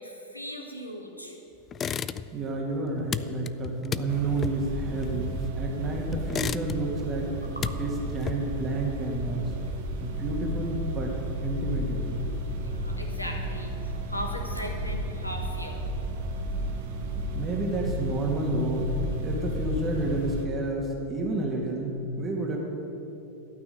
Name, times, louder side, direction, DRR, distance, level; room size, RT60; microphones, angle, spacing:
voice 1, 0.0-1.4 7.6-7.7 12.6-15.8, equal, 85° left, 2 dB, 1.5 m, -38 dB
sound 1, 1.7-2.5 2.8-5.7 6.1-7.0 7.4-8.7, left 8 dB, 25° left, 0.3 m, -34 dB
voice 2, 2.3-7.4 7.8-9.5 10.0-12.3 17.3-22.6, right 2 dB, 25° right, -1 dB, 2.1 m, -30 dB
sound 2, 4.1-20.5, right 1 dB, 55° right, 1.3 m, -33 dB
13.0 x 6.0 x 9.6 m, 2.9 s
figure-of-eight pair, 90°, 0 cm